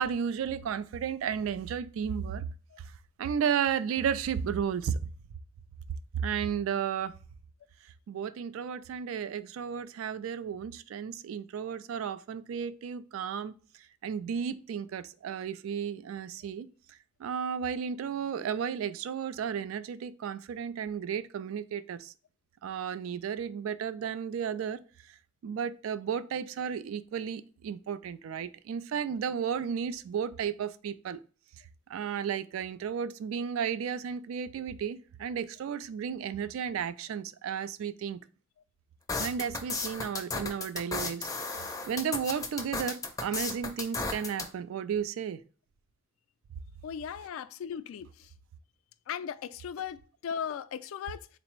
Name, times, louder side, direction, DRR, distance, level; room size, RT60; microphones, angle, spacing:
voice 1, 0.0-2.4 3.2-5.0 6.2-7.1 8.1-13.5 14.0-16.7 17.2-22.1 22.6-24.8 25.4-31.2 31.9-38.2 39.2-45.4, right 7 dB, 90° right, 0.3 m, -33 dB
sound 1, 39.1-44.5, left 3 dB, 15° left, 0.4 m, -34 dB
voice 2, 46.8-48.3 49.1-51.3, left 8 dB, 90° left, 0.3 m, -37 dB
3.9 x 2.0 x 4.4 m
head